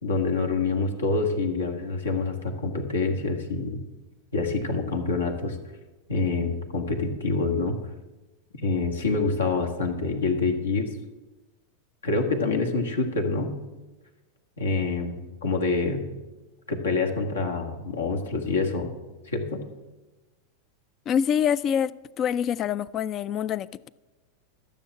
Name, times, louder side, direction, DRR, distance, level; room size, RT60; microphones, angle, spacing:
voice 1, 0.0-3.8 4.3-5.6 6.1-7.8 8.6-10.9 12.0-13.6 14.6-16.0 16.7-18.9 19.2-19.6, left 3 dB, 75° left, 4 dB, 1.6 m, -26 dB
voice 2, 21.1-23.9, left 8 dB, 35° left, 20 dB, 0.4 m, -26 dB
13.0 x 7.0 x 7.6 m, 1.2 s
figure-of-eight pair, 90°, 0 cm